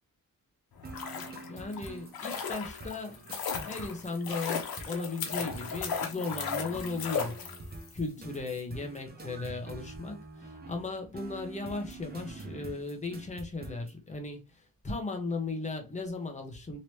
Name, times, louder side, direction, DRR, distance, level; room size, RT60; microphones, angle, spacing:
sound 1, 0.7-7.9 8.2-8.3, left 6 dB, 80° left, 0.8 m, -36 dB
sound 2, 0.8-14.0, right 3 dB, 25° right, 0.6 m, -46 dB
voice 1, 1.5-3.2 3.6-7.4 7.9-16.8, left 3 dB, 20° left, 0.8 m, -36 dB
3.0 x 2.8 x 3.1 m
wide cardioid pair, 130°, 36 cm